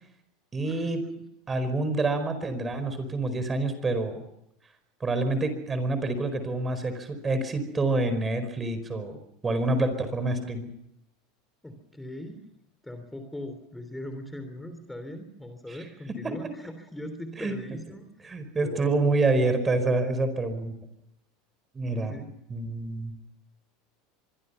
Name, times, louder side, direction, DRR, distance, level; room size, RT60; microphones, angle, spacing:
voice 1, 0.5-1.1 1.5-4.2 5.0-9.2 9.4-10.7 15.7-15.8 17.4-17.5 18.2-20.7 21.7-22.1 22.5-23.1, right 2 dB, 20° right, 10 dB, 4.8 m, -27 dB
voice 2, 11.6-12.5 12.8-18.3 18.6-19.2 21.9-22.3, left 1 dB, 5° left, 8 dB, 3.3 m, -40 dB
25.0 x 22.5 x 5.6 m, 0.80 s
supercardioid pair, 105°, 0 cm